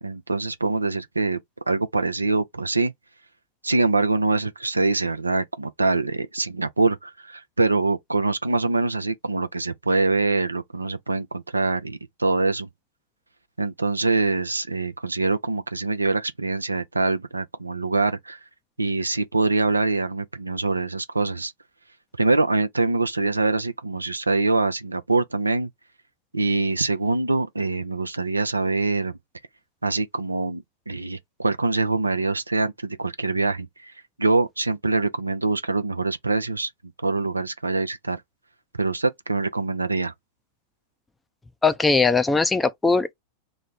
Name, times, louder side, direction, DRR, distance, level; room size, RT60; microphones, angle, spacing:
voice 1, 0.0-1.4 1.7-2.9 3.6-12.7 13.6-18.4 18.8-21.5 22.2-25.7 26.3-29.2 29.8-33.9 34.2-36.7 37.0-38.2 38.8-40.1, right 3 dB, 80° right, 0.5 m, -24 dB
voice 2, 41.6-43.1, left 4 dB, 10° left, 0.5 m, -20 dB
3.1 x 2.0 x 3.9 m
figure-of-eight pair, 90°, 0 cm